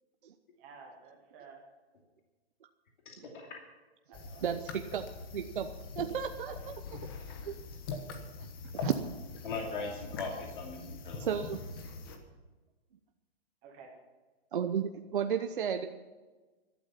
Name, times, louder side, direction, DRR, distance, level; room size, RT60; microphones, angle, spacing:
voice 1, 0.6-1.7 4.1-4.4 7.2-7.4 13.6-13.9, right 5 dB, 5° right, 0 dB, 0.5 m, -53 dB
voice 2, 3.1-3.6 9.4-11.4, left 4 dB, 50° left, 0 dB, 2.6 m, -40 dB
sound 1, 4.1-12.2, left 4 dB, 20° left, 1.1 m, -42 dB
voice 3, 4.4-5.0 5.3-5.7 6.0-6.7 7.5-7.6 8.8-8.9 11.2-11.6 14.5-15.9, right 8 dB, 50° right, 6 dB, 0.9 m, -33 dB
15.0 x 12.5 x 5.7 m, 1.2 s
hypercardioid pair, 180°, 32 cm